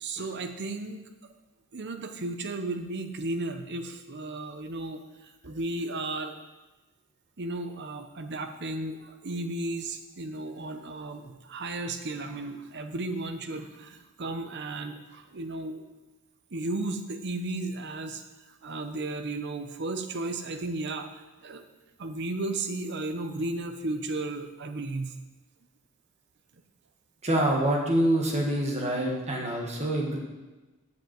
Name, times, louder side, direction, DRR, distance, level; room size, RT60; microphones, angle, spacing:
voice 1, 0.0-1.0 1.7-6.3 7.4-15.8 16.5-18.2 18.6-21.1 21.4-21.6 22.0-25.2, right 2 dB, 50° right, 7 dB, 0.8 m, -34 dB
voice 2, 27.2-30.2, right 1 dB, 30° right, 0 dB, 1.6 m, -26 dB
7.3 x 5.7 x 7.5 m, 1.1 s
head